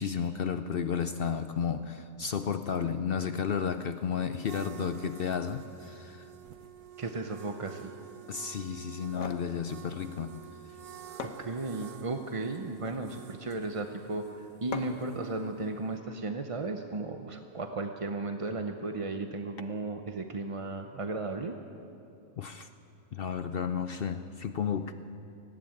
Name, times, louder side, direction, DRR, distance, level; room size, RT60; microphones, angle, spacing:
voice 1, 0.0-6.3 8.3-10.3 22.4-22.7 23.1-24.9, left 7 dB, 75° left, 9 dB, 0.5 m, -32 dB
sound 1, 3.5-15.9, right 10 dB, 70° right, 1.4 m, -50 dB
voice 2, 7.0-7.9 11.2-21.5, right 3 dB, 35° right, 5 dB, 0.5 m, -35 dB
sound 2, 8.9-9.5 10.7-10.8 11.2-12.0 12.6-13.1 14.7-15.1, left 5 dB, 60° left, 1.5 m, -41 dB
18.5 x 15.5 x 8.9 m, 2.7 s
omnidirectional pair, 1.7 m